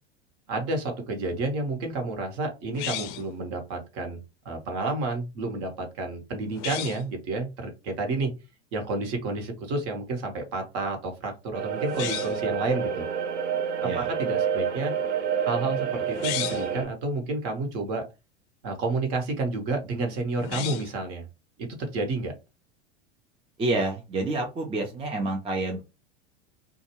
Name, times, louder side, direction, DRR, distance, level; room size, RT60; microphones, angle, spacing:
voice 1, 0.5-8.3 8.7-13.0 14.0-14.9 15.4-18.0 18.6-21.3 21.6-22.3, right 2 dB, 45° right, 4 dB, 1.1 m, -30 dB
sound 1, 2.7-3.4 6.5-7.1 11.8-12.5 16.1-16.7 20.3-21.0, left 11 dB, 40° left, 0.5 m, -34 dB
sound 2, 11.5-16.8, right 7 dB, 75° right, 0.8 m, -28 dB
voice 2, 23.6-25.8, right 2 dB, 15° right, 2 dB, 0.5 m, -28 dB
2.5 x 2.3 x 2.9 m, 0.27 s
hypercardioid pair, 90°, 35 cm